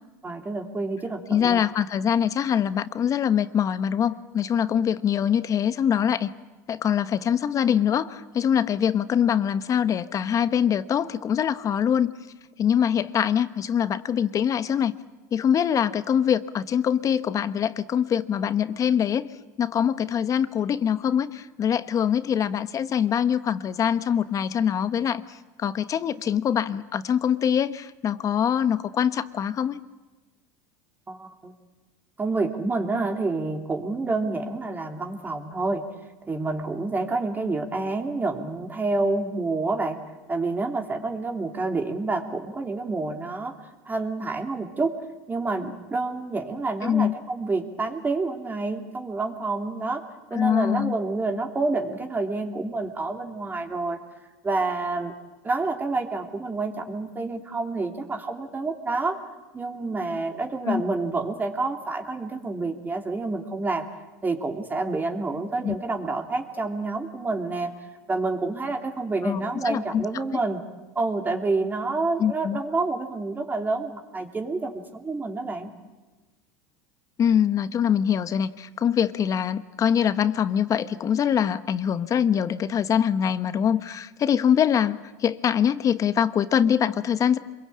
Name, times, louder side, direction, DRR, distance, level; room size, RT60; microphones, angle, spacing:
voice 1, 0.2-1.6 31.1-31.5 32.2-35.8 36.3-40.0 40.3-43.5 43.8-44.9 45.3-50.0 50.3-54.0 54.4-55.1 55.4-59.2 59.5-63.9 64.2-67.7 68.1-70.6 70.9-75.7, right 3 dB, 20° right, 4 dB, 3.1 m, -28 dB
voice 2, 1.3-6.3 6.7-12.1 12.6-14.9 15.3-19.3 19.6-29.8 46.8-47.2 50.3-51.0 60.6-60.8 65.6-65.7 69.2-70.0 72.2-72.6 77.2-87.4, left 8 dB, 35° left, 13 dB, 1.2 m, -23 dB
26.5 x 22.0 x 8.7 m, 1.2 s
supercardioid pair, 100°, 9 cm